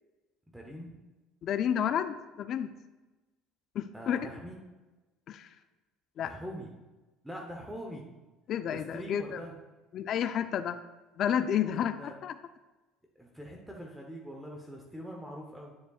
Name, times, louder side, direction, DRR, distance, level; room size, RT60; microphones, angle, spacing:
voice 1, 0.5-1.0 3.9-4.6 6.2-6.7 7.2-8.0 8.7-9.6 11.7-12.1 13.1-15.7, equal, 5° right, 0 dB, 0.7 m, -43 dB
voice 2, 1.4-2.7 3.8-4.3 5.3-5.5 6.2-6.3 8.5-9.4 9.9-10.8 11.2-12.0 12.2-12.3, left 9 dB, 45° left, 10 dB, 0.3 m, -30 dB
9.5 x 7.1 x 2.3 m, 1.1 s
cardioid pair, 145°, 0 cm